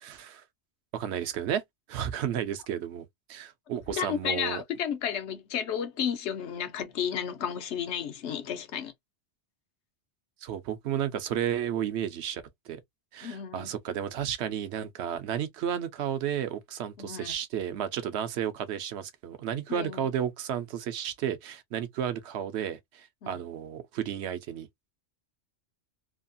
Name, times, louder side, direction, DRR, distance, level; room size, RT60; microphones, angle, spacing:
voice 1, 0.0-0.4 0.9-1.6 1.9-4.6 10.4-12.8 13.1-24.7, right 9 dB, 75° right, 0.9 m, -32 dB
voice 2, 3.9-8.9 13.2-13.7 17.0-17.3 19.7-20.1 23.2-23.4, left 8 dB, 80° left, 1.0 m, -32 dB
2.9 x 2.3 x 2.4 m
omnidirectional pair, 1.2 m